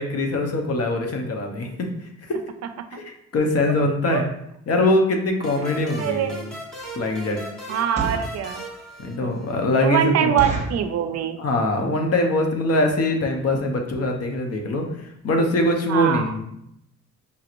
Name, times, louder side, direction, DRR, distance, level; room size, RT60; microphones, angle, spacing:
voice 1, 0.0-1.9 2.2-2.4 2.9-4.3 4.7-6.5 7.0-7.4 9.0-10.5 11.4-16.5, left 1 dB, 55° left, 3 dB, 0.8 m, -23 dB
sound 1, 5.4-9.8, equal, ahead, 1.3 m, -38 dB
voice 2, 6.0-6.4 7.7-8.6 9.2-9.3 9.8-11.4 15.9-16.3, right 10 dB, 60° right, 8 dB, 0.4 m, -23 dB
sound 2, 6.8-7.0 7.7-8.4 8.9-9.0 9.3-9.4 9.8-9.9 10.4-10.9 11.5-11.8 12.0-12.1 12.4-12.6 13.2-13.3 13.5-13.7 14.0-14.1 14.3-14.4, right 4 dB, 20° right, 0.9 m, -30 dB
5.3 x 2.9 x 2.5 m, 0.77 s
cardioid pair, 90°, 30 cm